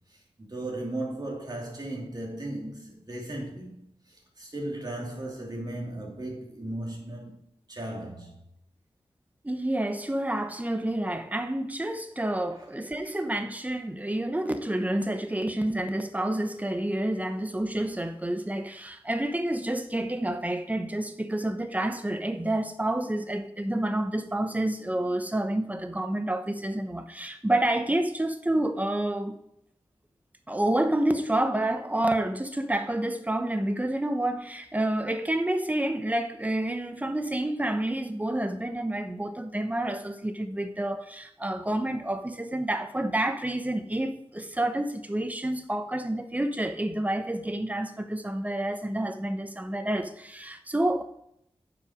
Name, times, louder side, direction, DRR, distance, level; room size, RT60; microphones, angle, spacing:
voice 1, 0.1-3.8 4.1-7.4 7.7-8.4 12.5-12.6, right 1 dB, 40° right, 2.8 m, -36 dB
voice 2, 9.4-29.3 30.5-51.0, right 1 dB, 15° right, 0.9 m, -29 dB
9.2 x 5.7 x 5.1 m
wide cardioid pair, 70°, 11 cm